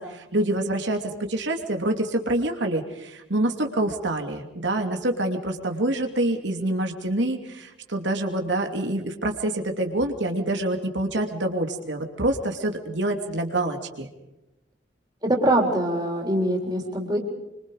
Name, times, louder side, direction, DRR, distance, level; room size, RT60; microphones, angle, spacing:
voice 1, 0.0-14.1, right 1 dB, 80° right, 4 dB, 2.9 m, -26 dB
voice 2, 15.2-17.2, right 1 dB, 20° right, 0 dB, 3.9 m, -23 dB
27.0 x 25.0 x 5.0 m, 0.99 s
head